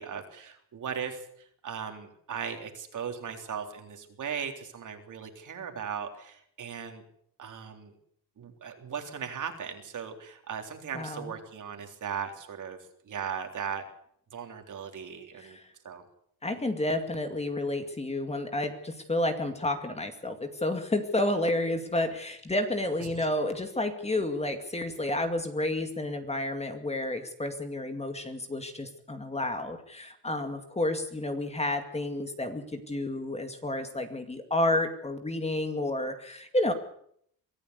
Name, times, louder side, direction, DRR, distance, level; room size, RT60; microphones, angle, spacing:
voice 1, 0.0-7.0 7.4-7.9 8.4-12.8 13.0-13.8 14.3-15.6 15.8-16.0 23.0-23.3, right 7 dB, 50° right, 4 dB, 3.7 m, -38 dB
voice 2, 10.9-11.3 15.4-15.6 16.4-36.7, left 1 dB, 15° left, 7 dB, 2.3 m, -30 dB
24.0 x 14.0 x 8.3 m, 0.68 s
cardioid pair, 120°, 38 cm